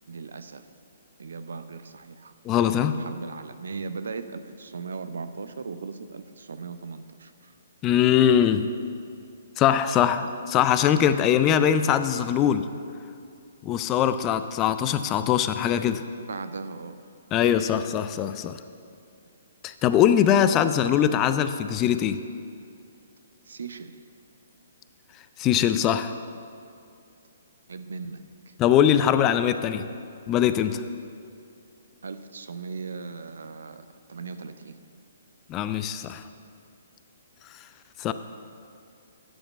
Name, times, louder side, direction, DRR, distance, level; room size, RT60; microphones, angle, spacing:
voice 1, 0.1-0.7 1.2-2.3 3.0-7.5 16.3-17.0 23.5-24.0 27.7-28.5 32.0-34.8, right 4 dB, 65° right, 11 dB, 0.5 m, -38 dB
voice 2, 2.4-2.9 7.8-8.7 9.6-12.7 13.6-16.0 17.3-18.6 19.6-22.2 25.4-26.1 28.6-29.8 30.3-30.8 35.5-36.2 38.0-38.1, left 9 dB, 25° left, 11 dB, 0.3 m, -22 dB
9.9 x 5.1 x 6.9 m, 2.4 s
figure-of-eight pair, 125°, 0 cm